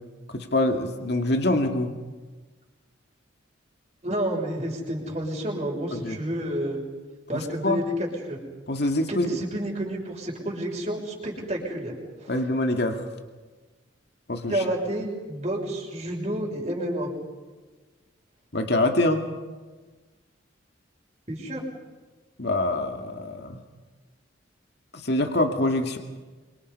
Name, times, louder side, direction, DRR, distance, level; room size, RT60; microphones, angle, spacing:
voice 1, 0.3-1.9 5.9-6.2 7.3-7.8 8.7-9.4 12.3-13.0 14.3-14.6 18.5-19.2 22.4-23.6 24.9-26.0, left 1 dB, 55° left, 4 dB, 2.4 m, -25 dB
voice 2, 4.0-6.8 7.3-8.4 9.1-11.9 12.2-12.3 14.5-17.1 21.3-21.6, right 1 dB, 35° right, -1 dB, 6.4 m, -30 dB
28.0 x 25.5 x 5.6 m, 1.3 s
head